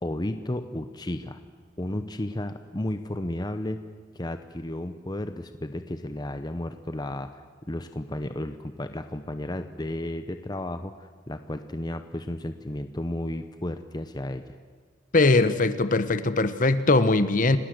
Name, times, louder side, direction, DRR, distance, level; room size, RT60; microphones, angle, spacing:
voice 1, 0.0-1.4 1.8-3.8 4.1-14.4, left 1 dB, 20° left, 9 dB, 0.9 m, -33 dB
voice 2, 15.1-17.6, left 2 dB, 45° left, 12 dB, 1.2 m, -21 dB
30.0 x 18.5 x 7.9 m, 1.5 s
head